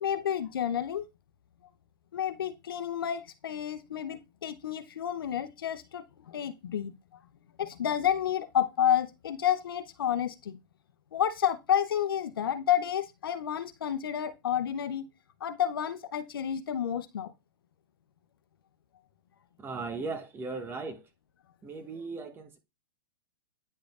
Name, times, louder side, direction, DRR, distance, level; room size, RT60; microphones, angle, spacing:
voice 1, 0.0-1.0 2.1-6.9 7.6-10.6 11.1-15.0 15.4-17.3, left 9 dB, 80° left, 0.8 m, -30 dB
voice 2, 19.6-21.1 21.6-22.6, right 4 dB, 20° right, 1.0 m, -37 dB
9.5 x 5.1 x 2.4 m
hypercardioid pair, 115°, 12 cm